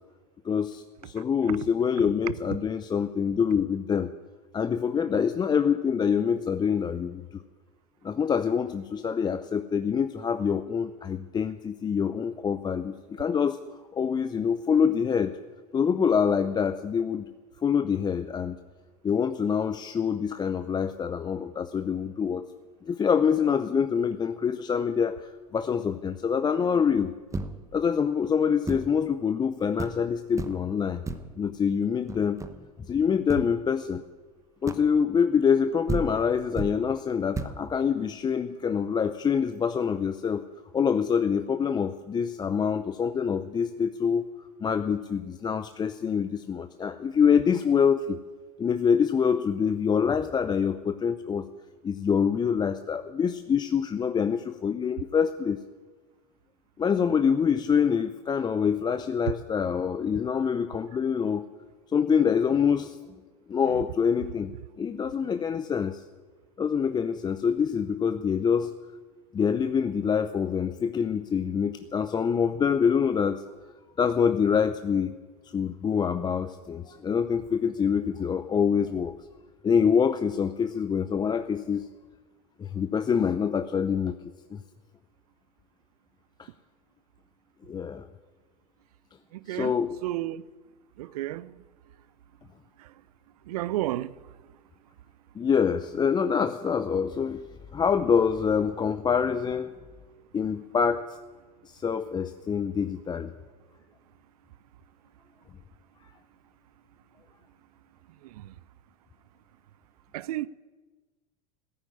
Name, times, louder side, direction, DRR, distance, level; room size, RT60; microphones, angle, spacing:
voice 1, 0.4-4.1 4.5-7.4 8.0-13.6 13.9-15.3 15.7-17.3 17.6-18.6 19.0-22.4 22.8-27.1 27.7-31.0 31.4-32.4 32.9-34.0 34.6-40.4 40.7-44.3 44.6-48.2 48.6-51.5 51.8-55.6 56.8-61.5 61.9-63.0 63.5-64.5 64.8-66.0 66.6-68.7 69.3-73.4 74.0-75.1 75.5-79.1 79.6-81.9 82.6-84.1 84.5-84.6 86.4-86.5 87.7-88.1 89.5-90.0 95.4-97.4 97.7-99.7 100.3-101.2 101.6-103.3, left 7 dB, 20° left, 0.6 m, -25 dB
sound 1, 27.3-27.8 28.7-29.0 29.4-29.5 29.8-30.1 30.4-30.7 31.1-31.4 32.1-32.7 33.3-33.5 34.7-35.0 35.6-35.7 35.9-36.9 37.3-37.7, right 3 dB, 15° right, 1.2 m, -34 dB
voice 2, 90.0-90.4 91.2-91.4 93.5-94.1 110.1-110.5, right 15 dB, 65° right, 0.6 m, -30 dB
15.5 x 9.1 x 9.8 m
hypercardioid pair, 85°, 21 cm